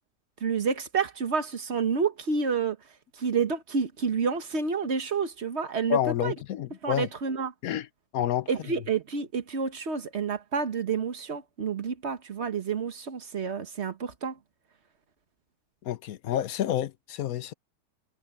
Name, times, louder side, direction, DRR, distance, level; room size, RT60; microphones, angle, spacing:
voice 1, 0.4-2.8 3.2-6.3 6.8-7.5 8.5-14.4, right 5 dB, 45° right, 1.5 m, -29 dB
voice 2, 5.9-7.1 7.6-7.9 8.1-8.5 15.8-17.5, left 11 dB, 65° left, 1.2 m, -29 dB
omnidirectional pair, 1.7 m